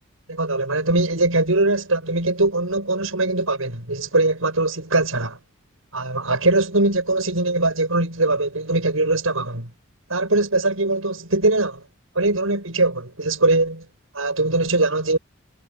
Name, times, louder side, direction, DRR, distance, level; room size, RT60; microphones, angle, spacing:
voice 1, 0.3-5.4 5.9-9.7 10.1-11.8 12.1-13.9 14.1-15.2, right 2 dB, 80° right, 6.4 m, -21 dB
head